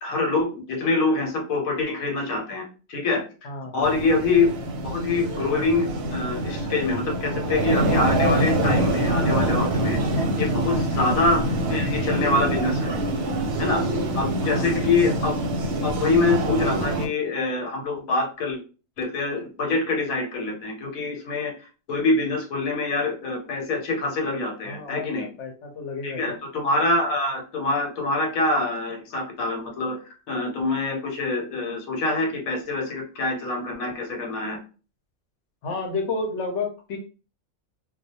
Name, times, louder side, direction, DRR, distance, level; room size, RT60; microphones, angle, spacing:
voice 1, 0.0-4.5 4.8-11.4 11.7-12.9 13.6-13.8 14.2-15.4 15.8-18.6 19.0-21.5 21.9-25.3 26.0-30.0 30.3-34.6, left 3 dB, 90° left, 2 dB, 1.1 m, -25 dB
voice 2, 3.4-4.0 10.6-10.8 14.4-14.8 24.6-26.3 35.6-37.0, left 3 dB, 65° left, 3 dB, 0.8 m, -31 dB
sound 1, 3.8-17.1, right 1 dB, 65° right, 0.7 m, -25 dB
2.3 x 2.1 x 2.7 m, 0.35 s
omnidirectional pair, 1.4 m